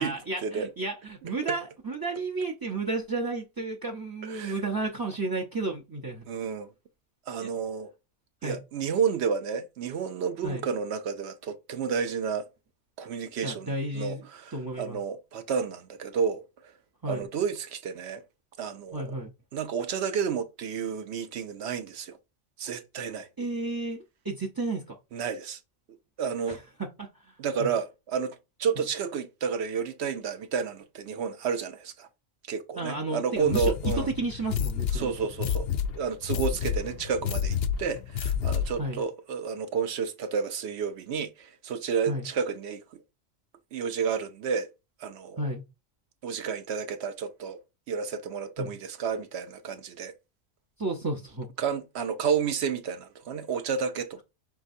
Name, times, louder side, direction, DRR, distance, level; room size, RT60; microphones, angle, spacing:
voice 1, 0.0-6.3 7.4-7.5 8.4-8.6 10.4-10.6 13.4-14.2 14.5-15.0 17.0-17.3 18.9-19.3 23.4-25.0 26.5-27.3 27.6-27.7 32.8-35.1 38.8-39.0 42.1-42.3 45.4-45.6 48.6-48.7 50.8-51.5, right 2 dB, 30° right, 0.4 m, -32 dB
voice 2, 4.2-4.6 6.3-6.7 7.3-7.9 8.4-12.5 13.0-16.7 17.1-18.2 18.6-19.2 19.5-22.2 22.6-23.3 25.1-25.6 26.2-26.6 27.4-32.1 32.5-34.1 34.9-35.7 35.9-43.0 43.7-44.7 45.0-45.5 46.2-47.6 47.9-50.1 51.6-54.2, right 6 dB, 65° right, 0.8 m, -31 dB
sound 1, 33.5-38.9, left 8 dB, 65° left, 0.7 m, -30 dB
5.8 x 3.3 x 2.6 m
omnidirectional pair, 1.4 m